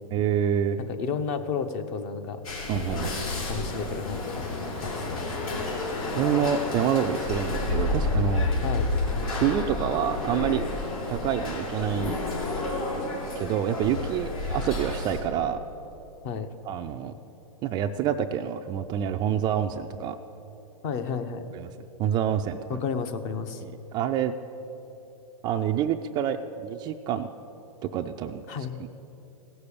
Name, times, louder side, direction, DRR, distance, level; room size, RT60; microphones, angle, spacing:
voice 1, 0.1-0.8 2.7-3.1 6.1-8.5 9.3-10.6 11.1-12.2 13.4-15.6 16.7-17.1 17.6-20.2 21.5-21.7 22.0-22.8 23.6-24.3 25.4-27.3 27.9-28.9, right 9 dB, 25° right, 6 dB, 0.4 m, -27 dB
voice 2, 0.8-2.4 2.9-3.1 3.5-4.5 4.8-5.4 8.6-8.9 16.2-16.5 20.8-21.5 22.7-23.6 28.5-28.9, left 6 dB, 35° left, 9 dB, 0.9 m, -32 dB
sound 1, 2.4-15.2, left 2 dB, 70° left, 3.6 m, -30 dB
16.0 x 6.7 x 8.5 m, 3.0 s
hypercardioid pair, 135°, 19 cm